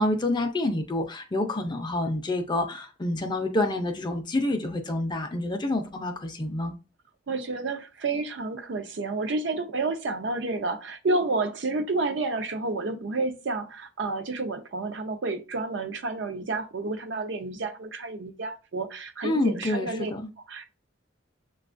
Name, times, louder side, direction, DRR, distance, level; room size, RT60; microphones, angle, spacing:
voice 1, 0.0-6.8 19.2-20.3, left 1 dB, 25° left, 0.4 m, -28 dB
voice 2, 7.3-20.1 20.5-20.7, right 3 dB, 65° right, 0.5 m, -30 dB
6.7 x 2.3 x 2.5 m
head